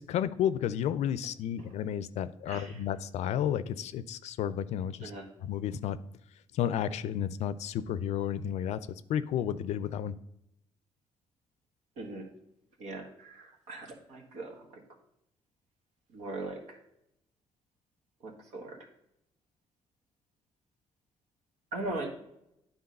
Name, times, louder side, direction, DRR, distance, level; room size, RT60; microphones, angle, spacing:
voice 1, 0.0-5.1 5.4-6.0 6.5-10.1, left 9 dB, 70° left, 15 dB, 0.4 m, -32 dB
voice 2, 2.5-2.8 5.0-5.3 12.0-12.3 12.8-14.8 16.1-16.8 18.2-18.8 21.7-22.1, right 2 dB, 80° right, 2 dB, 1.6 m, -40 dB
9.7 x 3.6 x 5.3 m, 0.82 s
supercardioid pair, 70°, 12 cm